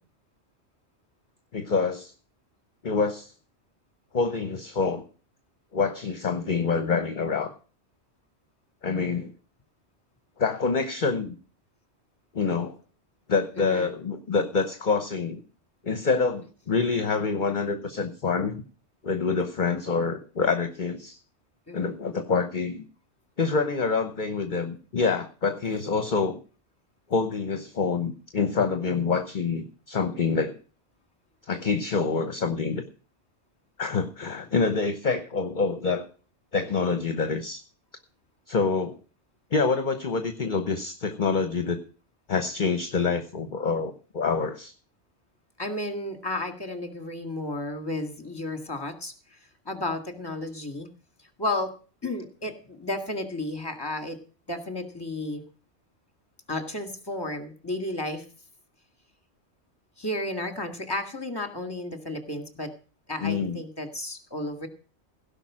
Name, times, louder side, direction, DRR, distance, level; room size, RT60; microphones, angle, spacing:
voice 1, 1.5-2.1 2.8-3.3 4.1-5.0 5.7-7.5 8.8-9.3 10.4-11.4 12.3-12.7 13.3-15.4 15.8-18.6 19.0-21.2 21.7-22.8 23.4-26.4 27.1-30.6 31.5-32.8 33.8-36.1 36.5-37.6 38.5-39.0 39.5-41.8 42.3-44.7 63.2-63.6, left 4 dB, 45° left, 8 dB, 1.1 m, -26 dB
voice 2, 13.6-13.9 21.7-22.0 45.6-50.9 51.4-51.7 52.0-54.2 54.5-55.4 56.5-58.3 60.0-62.7 63.1-64.7, left 1 dB, 20° left, 6 dB, 1.9 m, -33 dB
16.5 x 5.6 x 7.4 m, 0.38 s
omnidirectional pair, 1.2 m